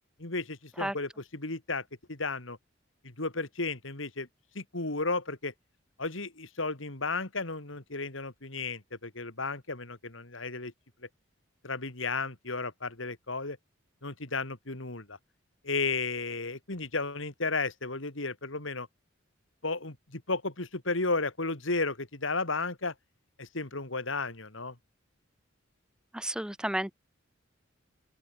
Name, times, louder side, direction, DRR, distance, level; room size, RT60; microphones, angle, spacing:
voice 1, 0.2-2.6 3.0-4.3 4.5-5.5 6.0-10.7 11.6-13.6 14.0-15.2 15.6-18.9 19.6-22.9 23.4-24.7, left 3 dB, 75° left, 3.0 m, -33 dB
voice 2, 26.1-26.9, right 1 dB, 5° right, 0.5 m, -32 dB
open air
head